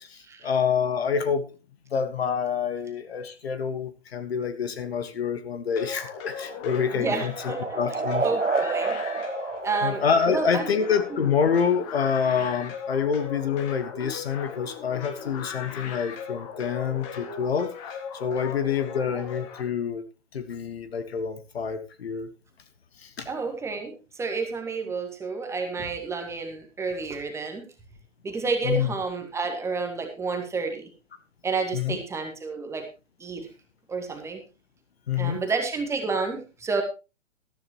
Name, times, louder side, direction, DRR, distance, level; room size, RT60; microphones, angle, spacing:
voice 1, 0.0-1.4 1.9-8.2 9.8-17.7 18.2-20.0 20.3-22.3 23.0-23.3 28.6-28.9 31.7-32.0 35.1-35.4, left 7 dB, 55° left, 10 dB, 1.6 m, -27 dB
sound 1, 5.8-19.6, left 7 dB, 25° left, 1.9 m, -38 dB
sound 2, 6.0-10.8, right 4 dB, 90° right, 0.8 m, -30 dB
voice 2, 6.9-7.7 8.2-8.9 9.6-10.9 19.1-19.3 23.2-27.6 28.2-30.8 31.4-32.9 33.2-33.5 33.9-34.4 35.2-36.8, right 4 dB, 5° right, 4 dB, 1.6 m, -30 dB
13.5 x 13.0 x 3.0 m, 0.30 s
figure-of-eight pair, 120°, 37 cm